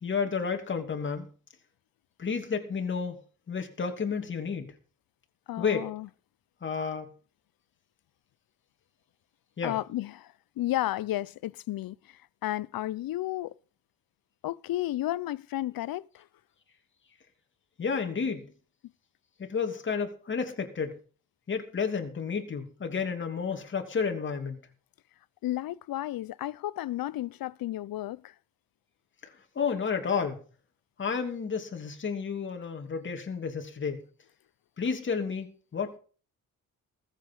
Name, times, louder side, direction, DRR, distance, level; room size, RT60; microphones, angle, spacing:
voice 1, 0.0-1.3 2.2-3.2 3.5-4.7 5.6-5.9 6.6-7.1 9.6-9.8 17.8-18.5 19.4-21.0 21.5-24.6 29.5-30.4 31.0-34.0 34.8-36.0, left 5 dB, 35° left, 2.8 m, -31 dB
voice 2, 5.5-6.1 9.6-10.3 10.6-12.0 12.4-13.5 14.4-16.1 25.4-28.2, left 14 dB, 85° left, 0.8 m, -32 dB
20.0 x 8.3 x 5.5 m
wide cardioid pair, 175°, 34 cm